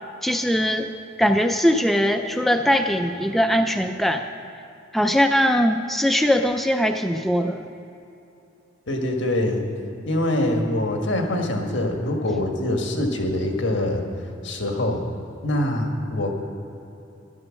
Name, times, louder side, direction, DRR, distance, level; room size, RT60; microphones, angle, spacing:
voice 1, 0.2-0.9 1.2-4.2 4.9-7.7, equal, ahead, 5 dB, 0.4 m, -21 dB
voice 2, 8.9-9.6 10.0-14.0 14.4-15.1 15.4-16.3, left 1 dB, 65° left, 3 dB, 1.5 m, -24 dB
11.0 x 11.0 x 6.3 m, 2.9 s
head